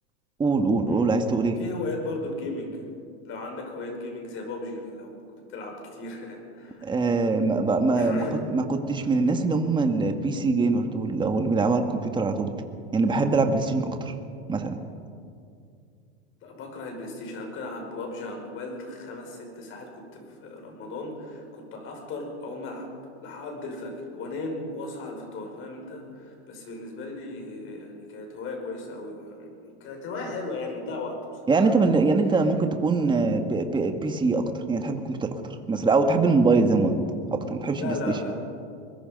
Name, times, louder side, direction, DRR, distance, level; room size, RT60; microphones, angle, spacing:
voice 1, 0.4-1.6 6.8-8.2 8.5-12.5 12.9-14.1 14.5-14.8 31.5-37.0 37.3-38.2, right 3 dB, 15° right, 6 dB, 1.8 m, -23 dB
voice 2, 1.6-2.9 3.2-5.2 5.5-6.8 8.0-8.4 16.4-22.9 23.2-31.7 37.8-38.4, left 2 dB, 40° left, 2 dB, 6.0 m, -36 dB
23.5 x 21.0 x 5.4 m, 2.4 s
supercardioid pair, 130°, 33 cm